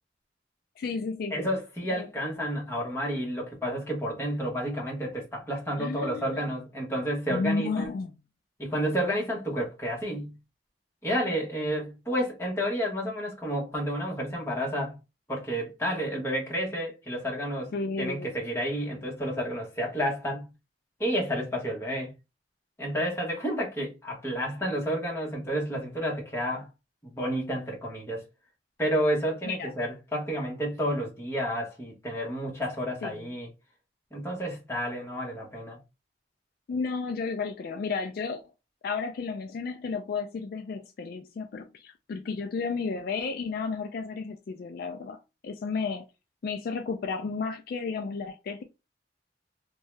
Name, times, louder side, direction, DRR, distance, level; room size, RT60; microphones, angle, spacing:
voice 1, 0.8-1.5 1.9-2.1 5.8-6.4 7.3-8.2 17.7-18.3 29.4-29.7 33.0-33.2 36.7-38.4 38.8-46.1 46.4-48.6, left 4 dB, 55° left, 0.3 m, -32 dB
voice 2, 1.3-7.9 8.6-10.4 11.0-15.0 15.3-17.7 18.0-20.5 21.0-22.1 22.8-26.7 27.0-28.2 28.8-33.5 34.1-35.8, equal, 15° left, 1.1 m, -30 dB
2.7 x 2.2 x 3.1 m
head